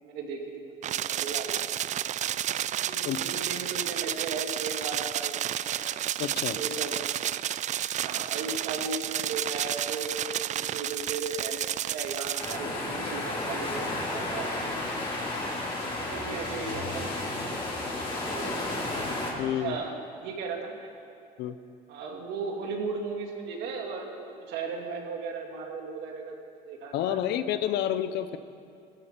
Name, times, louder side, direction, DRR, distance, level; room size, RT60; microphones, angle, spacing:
voice 1, 0.0-1.6 2.2-2.3 2.9-5.9 6.5-7.0 8.0-15.0 16.0-17.5 18.2-18.6 19.6-20.9 21.9-26.4 26.7-27.2, right 4 dB, 85° right, 1 dB, 2.3 m, -36 dB
sound 1, 0.8-12.6, right 11 dB, 45° right, 0.4 m, -31 dB
voice 2, 6.2-6.6 19.4-19.8 21.4-21.6 26.9-28.4, left 11 dB, 80° left, 11 dB, 0.8 m, -29 dB
sound 2, 12.4-19.3, left 2 dB, 30° left, 4.0 m, -32 dB
18.0 x 13.5 x 5.2 m, 2.4 s
cardioid pair, 110°, 17 cm